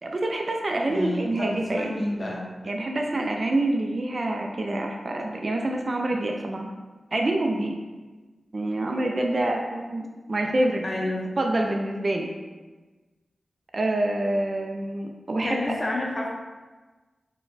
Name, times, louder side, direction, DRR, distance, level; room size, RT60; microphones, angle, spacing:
voice 1, 0.0-2.1 2.6-6.7 7.1-7.8 8.5-10.8 11.4-12.3 13.7-15.6, right 1 dB, 50° right, 2 dB, 0.4 m, -26 dB
voice 2, 0.9-2.4 10.8-11.2 15.4-16.3, left 1 dB, 40° left, -3 dB, 0.6 m, -29 dB
4.0 x 2.2 x 4.0 m, 1.3 s
cardioid pair, 55°, 0 cm